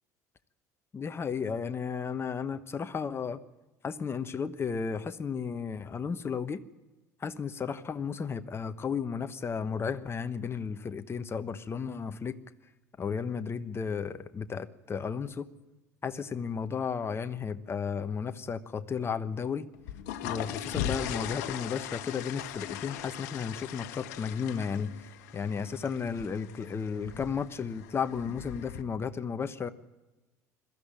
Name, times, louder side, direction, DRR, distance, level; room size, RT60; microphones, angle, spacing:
voice 1, 0.9-3.4 3.8-6.6 7.2-12.4 13.0-15.5 16.0-19.7 20.2-24.9 25.3-29.7, left 6 dB, 30° left, 1.1 m, -33 dB
sound 1, 19.7-28.8, left 10 dB, 70° left, 1.3 m, -39 dB
22.0 x 13.5 x 9.0 m
hypercardioid pair, 65°, 9 cm